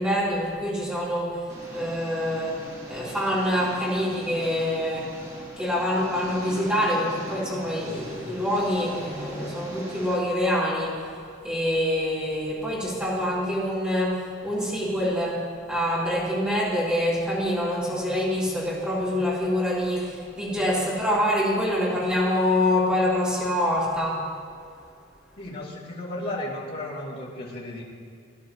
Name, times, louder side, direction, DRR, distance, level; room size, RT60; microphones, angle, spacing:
voice 1, 0.0-1.4 1.7-2.6 2.9-5.1 5.6-11.0 11.4-15.4 15.7-24.2, left 1 dB, 5° right, -9 dB, 3.8 m, -25 dB
Engine, 1.5-10.2, equal, 35° right, 2.4 m, -42 dB
voice 2, 25.4-27.8, left 1 dB, 50° left, -8 dB, 2.9 m, -34 dB
18.5 x 12.0 x 3.1 m, 2.4 s
head